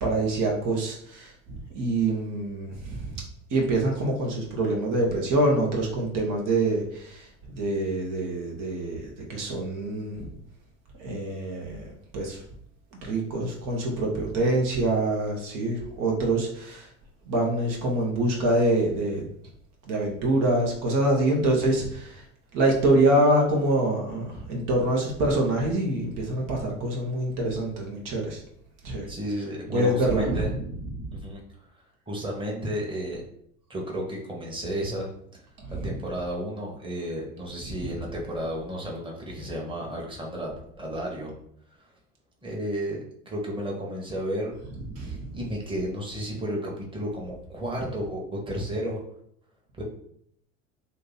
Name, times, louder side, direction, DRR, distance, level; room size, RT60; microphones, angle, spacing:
voice 1, 0.0-3.2 3.5-10.4 11.0-12.4 13.0-16.9 17.3-19.3 19.8-22.2 22.5-28.4 28.8-29.1 29.7-30.6 30.9-31.2 35.6-36.0 37.7-37.9 44.9-45.4, right 1 dB, 55° right, 0 dB, 1.0 m, -25 dB
voice 2, 29.1-30.5 31.1-31.4 32.1-33.2 33.7-35.1 35.7-41.3 42.4-44.5 45.0-49.0 49.8-49.9, equal, 15° right, -2 dB, 1.2 m, -32 dB
2.9 x 2.7 x 3.9 m, 0.68 s
hypercardioid pair, 70°, 38 cm